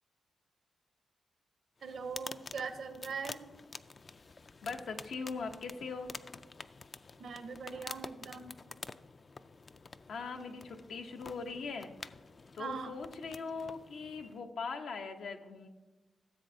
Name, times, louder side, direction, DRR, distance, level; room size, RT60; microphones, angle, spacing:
sound 1, 1.8-14.5, left 4 dB, 40° left, 0.3 m, -49 dB
voice 1, 1.8-3.4 7.2-8.5 12.6-13.0, right 5 dB, 75° right, 9 dB, 0.8 m, -41 dB
voice 2, 4.6-6.1 10.1-11.9 12.5-15.7, left 4 dB, 80° left, 5 dB, 0.7 m, -40 dB
14.5 x 7.5 x 2.7 m, 1.2 s
cardioid pair, 80°, 0 cm